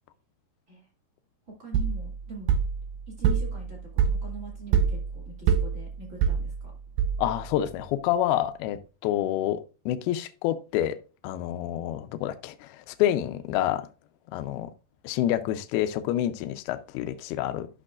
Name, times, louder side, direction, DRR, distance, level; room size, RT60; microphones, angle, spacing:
voice 1, 1.6-2.5 3.2-6.5, right 2 dB, 35° right, 1.3 m, -43 dB
sound 1, 1.7-7.6, right 7 dB, 85° right, 2.2 m, -26 dB
voice 2, 7.2-13.9 14.3-14.7 15.0-17.7, left 12 dB, 85° left, 2.2 m, -28 dB
12.5 x 6.2 x 2.5 m
omnidirectional pair, 5.2 m